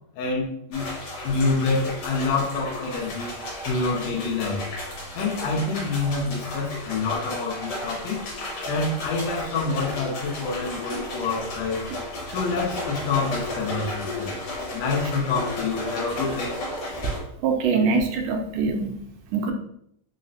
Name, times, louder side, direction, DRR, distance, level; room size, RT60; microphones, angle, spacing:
voice 1, 0.2-0.9 1.2-3.3 3.7-4.6 5.2-8.2 8.7-11.8 12.3-14.3 14.7-16.5, left 3 dB, 85° left, -4 dB, 2.2 m, -27 dB
sound 1, 0.7-17.2, left 1 dB, 60° left, 1.7 m, -33 dB
voice 2, 17.4-18.9 19.3-19.5, right 4 dB, 85° right, 4 dB, 2.0 m, -23 dB
5.3 x 2.0 x 2.6 m, 0.71 s
omnidirectional pair, 3.5 m